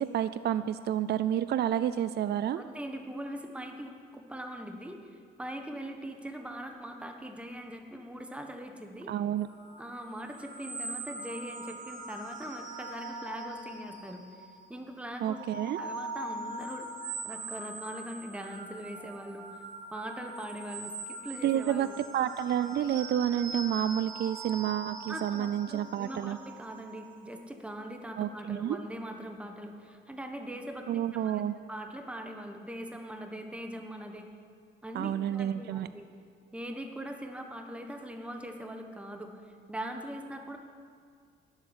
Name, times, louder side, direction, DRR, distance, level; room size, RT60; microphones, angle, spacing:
voice 1, 0.0-2.6 9.1-9.5 15.2-15.8 21.4-21.9 22.1-26.4 28.2-28.8 30.9-31.5 34.9-35.9, right 10 dB, 55° right, 13 dB, 0.5 m, -29 dB
voice 2, 2.6-9.1 9.8-14.2 14.7-16.9 17.2-19.6 19.9-22.0 25.1-34.3 34.8-36.1 36.5-39.4 39.7-40.6, equal, 5° right, 4 dB, 1.3 m, -41 dB
sound 1, 9.5-14.7 15.1-27.4, right 3 dB, 75° right, 2.5 m, -42 dB
12.0 x 8.1 x 9.9 m, 2.2 s
cardioid pair, 90°, 20 cm